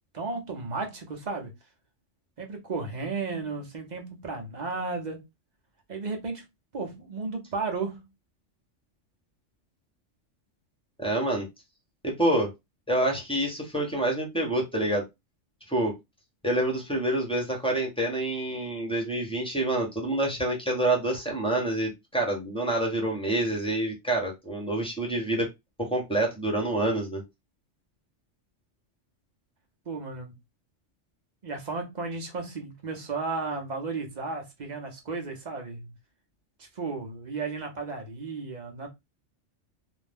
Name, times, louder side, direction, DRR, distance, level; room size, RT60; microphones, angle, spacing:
voice 1, 0.1-1.5 2.4-5.2 5.9-6.4 6.7-8.0 29.9-30.3 31.4-35.9 36.6-38.9, right 4 dB, 45° right, 0.7 m, -34 dB
voice 2, 11.0-11.5 12.0-12.5 12.9-15.0 15.7-15.9 16.4-25.5 25.8-27.2, right 1 dB, 5° left, 0.7 m, -27 dB
2.5 x 2.1 x 3.3 m
omnidirectional pair, 1.3 m